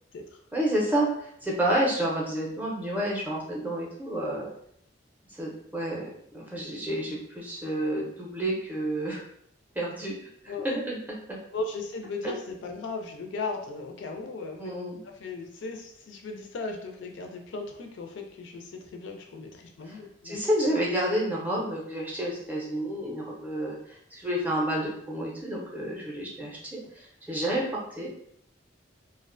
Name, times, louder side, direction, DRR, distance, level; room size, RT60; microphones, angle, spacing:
voice 1, 0.5-4.5 5.4-9.2 9.7-10.1 10.4-11.4 12.2-12.3 14.6-15.0 19.9-20.0 20.2-26.8 27.3-28.1, right 1 dB, 10° right, -3 dB, 0.5 m, -30 dB
voice 2, 11.5-14.7 15.0-20.4, left 3 dB, 65° left, 3 dB, 0.3 m, -37 dB
2.4 x 2.1 x 2.4 m, 0.67 s
head